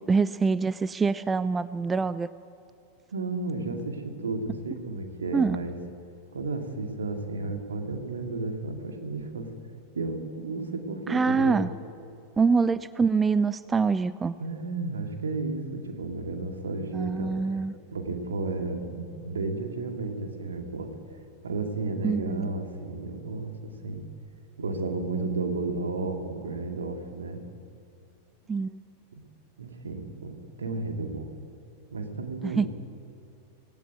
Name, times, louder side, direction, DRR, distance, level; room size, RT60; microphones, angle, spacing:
voice 1, 0.0-2.3 5.3-5.6 11.1-11.7 12.4-14.3 16.9-17.7 22.0-22.5 28.5-28.7 32.4-32.7, right 4 dB, 15° right, 16 dB, 0.4 m, -25 dB
voice 2, 3.1-5.8 6.3-9.5 9.9-11.6 14.4-17.6 17.9-20.9 21.4-24.0 24.6-27.4 29.6-31.3 31.9-32.7, right 3 dB, 70° right, 4 dB, 2.3 m, -33 dB
19.0 x 17.0 x 9.3 m, 2.5 s
figure-of-eight pair, 90°, 0 cm